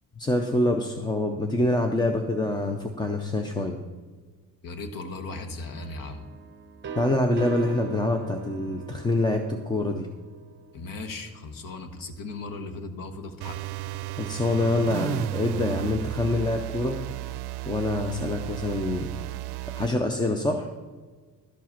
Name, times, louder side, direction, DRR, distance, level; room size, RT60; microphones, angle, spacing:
voice 1, 0.2-3.8 6.9-10.1 14.2-17.0 17.7-19.1 19.7-20.7, left 2 dB, 10° left, 4 dB, 0.5 m, -26 dB
voice 2, 4.6-6.3 10.7-13.6, left 3 dB, 60° left, 8 dB, 1.2 m, -37 dB
sound 1, 5.8-11.4, right 5 dB, 30° right, 0.7 m, -41 dB
sound 2, 13.4-20.0, right 13 dB, 80° right, 0.5 m, -34 dB
12.0 x 7.5 x 5.8 m, 1.4 s
cardioid pair, 170°, 38 cm